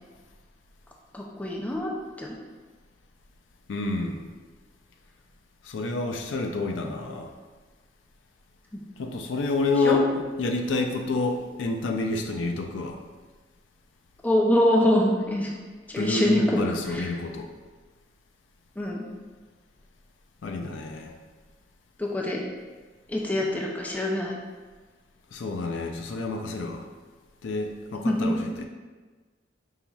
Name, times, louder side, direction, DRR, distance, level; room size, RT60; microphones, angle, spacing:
voice 1, 1.1-1.9 2.2-2.4 8.7-8.8 9.8-10.0 14.2-15.5 15.9-16.6 16.9-17.1 18.8-19.1 22.0-22.4 23.1-24.4 28.0-28.6, left 1 dB, 10° left, -1 dB, 0.4 m, -24 dB
voice 2, 3.7-4.2 5.6-7.3 9.0-10.1 10.4-13.0 16.0-17.5 20.4-21.1 25.3-26.9 27.4-28.6, left 3 dB, 75° left, 4 dB, 0.4 m, -28 dB
5.5 x 2.9 x 2.3 m, 1.3 s
head